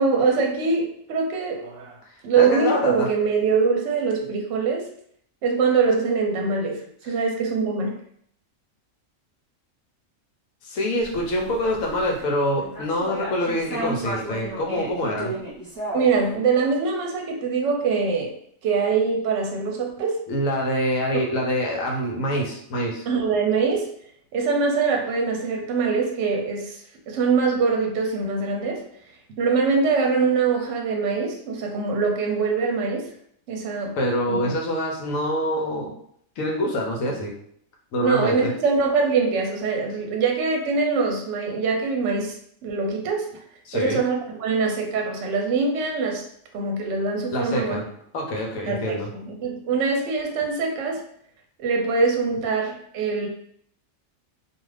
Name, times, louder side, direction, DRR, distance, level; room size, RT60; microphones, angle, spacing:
voice 1, 0.0-2.0 2.2-4.8 5.4-7.9 15.9-18.4 18.6-20.2 21.1-21.3 23.1-23.9 24.3-28.8 29.4-33.1 33.5-34.0 34.3-34.5 38.0-43.3 43.7-46.3 46.5-47.8 48.7-51.0 51.6-53.3, right 4 dB, 70° right, 1 dB, 0.9 m, -23 dB
voice 2, 2.4-3.1 10.6-15.3 20.3-23.0 34.0-35.9 36.4-37.3 37.9-38.5 43.6-44.0 47.3-47.8 48.1-49.1, equal, 80° left, 0 dB, 1.0 m, -25 dB
sound 1, 11.0-12.2 12.6-16.2, right 1 dB, 20° right, 0.8 m, -33 dB
2.4 x 2.4 x 3.2 m, 0.66 s
omnidirectional pair, 1.4 m